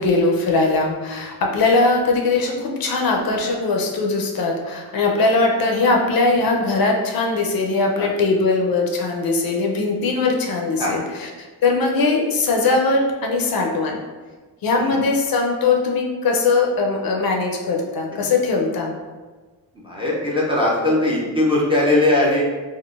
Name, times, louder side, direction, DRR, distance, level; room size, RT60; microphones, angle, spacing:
voice 1, 0.0-14.0 14.6-18.9, left 3 dB, 55° left, 1 dB, 0.5 m, -20 dB
voice 2, 19.8-22.4, left 1 dB, 15° right, -5 dB, 0.4 m, -19 dB
3.7 x 2.1 x 2.4 m, 1.3 s
wide cardioid pair, 135°, 45 cm